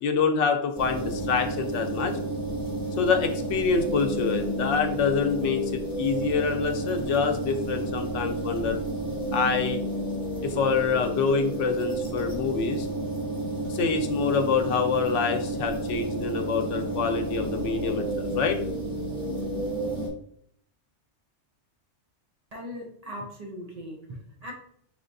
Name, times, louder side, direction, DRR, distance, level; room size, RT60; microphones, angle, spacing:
voice 1, 0.0-2.2 3.0-8.8 9.3-9.8 10.4-12.9 13.7-18.6, left 5 dB, 90° left, 6 dB, 0.9 m, -26 dB
sound 1, 0.7-20.1, right 1 dB, 5° left, 1.1 m, -31 dB
voice 2, 22.5-24.5, equal, 45° right, 0 dB, 0.6 m, -39 dB
4.2 x 3.4 x 2.6 m, 0.67 s
omnidirectional pair, 1.2 m